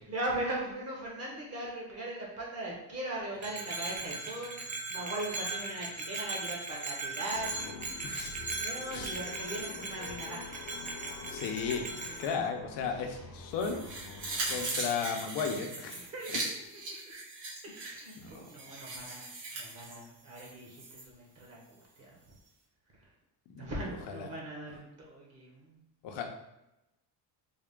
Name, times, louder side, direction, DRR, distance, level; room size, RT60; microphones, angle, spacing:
voice 1, 0.0-4.6 4.9-8.1 8.5-10.6 12.0-12.1 12.9-13.2 16.0-16.6 17.6-19.2 19.5-21.6 22.0-22.2 23.6-25.8, right 1 dB, 35° right, -2 dB, 1.1 m, -39 dB
Bell, 3.4-12.4, right 3 dB, 20° right, 0.4 m, -39 dB
sound 1, 7.3-14.7, left 4 dB, 45° left, 0.5 m, -47 dB
voice 2, 8.0-8.4 8.9-9.2 11.2-11.9 12.2-13.9 14.5-16.0 16.3-16.4 18.2-18.5 23.5-24.3 26.0-26.2, left 6 dB, 80° left, 3 dB, 0.8 m, -35 dB
sound 2, 13.6-21.0 21.4-21.5, right 2 dB, 80° right, 1.5 m, -39 dB
3.7 x 2.4 x 3.6 m, 0.91 s
cardioid pair, 135°, 42 cm